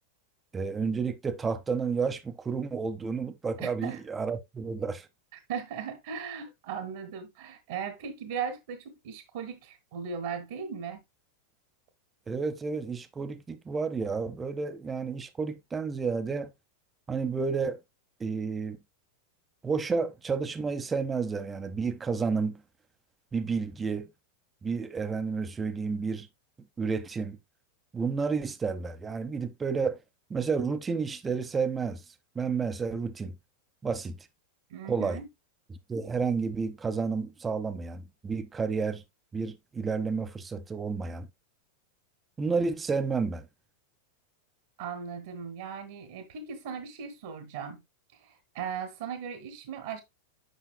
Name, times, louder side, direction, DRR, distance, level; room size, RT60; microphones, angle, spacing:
voice 1, 0.5-5.1 12.3-16.5 17.1-17.8 18.2-18.8 19.6-22.6 23.3-24.1 24.6-26.3 26.8-27.4 27.9-30.0 30.3-32.0 32.3-33.3 33.8-34.2 34.9-35.2 35.9-39.0 39.3-41.3 42.4-43.5, right 5 dB, 15° right, 0.9 m, -31 dB
voice 2, 3.6-4.0 5.3-11.0 34.7-35.3 44.8-47.8 48.1-50.0, right 7 dB, 55° right, 1.5 m, -38 dB
9.3 x 6.0 x 2.2 m
figure-of-eight pair, 90°, 0 cm